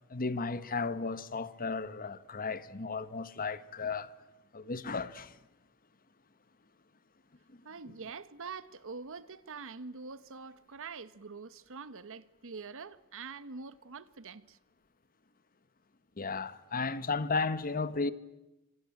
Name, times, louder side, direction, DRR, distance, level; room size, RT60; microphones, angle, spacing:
voice 1, 0.1-4.1 4.5-5.4 7.5-7.6 16.2-18.1, left 4 dB, 40° left, 1.2 m, -34 dB
voice 2, 7.6-14.6, right 4 dB, 65° right, 1.0 m, -45 dB
26.5 x 25.0 x 8.8 m
head